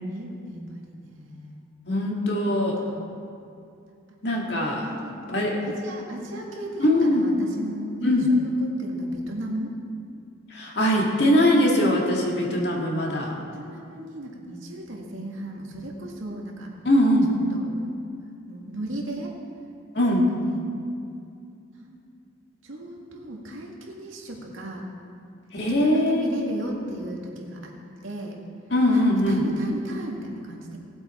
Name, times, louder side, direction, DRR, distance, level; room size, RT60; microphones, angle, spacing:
voice 1, 0.1-1.6 2.4-3.0 4.3-4.5 4.8-9.7 13.4-16.7 17.5-17.7 18.5-19.3 20.1-20.6 21.8-22.0 22.6-24.8 25.6-27.7 28.0-28.4 28.9-30.8, right 1 dB, 80° right, -1 dB, 2.0 m, -36 dB
voice 2, 1.9-2.8 4.2-4.9 5.3-5.6 6.8-7.3 8.0-8.3 10.5-13.3 16.9-17.3 19.9-20.3 25.5-26.4 28.7-29.4, left 1 dB, 55° left, -1 dB, 2.0 m, -21 dB
18.5 x 8.0 x 4.4 m, 2.5 s
head